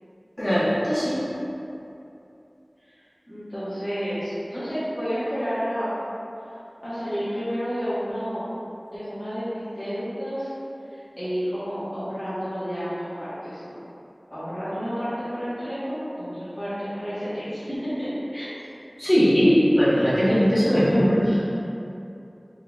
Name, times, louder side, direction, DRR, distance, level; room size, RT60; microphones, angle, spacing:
voice 1, 0.4-1.2 19.0-21.4, equal, 35° left, -11 dB, 1.3 m, -19 dB
voice 2, 2.8-6.0 6.8-8.5 8.9-10.5 10.9-13.8 14.3-18.6 19.2-19.7, equal, 15° left, -15 dB, 1.0 m, -30 dB
4.0 x 2.8 x 2.2 m, 2.8 s
wide cardioid pair, 40°, 0 cm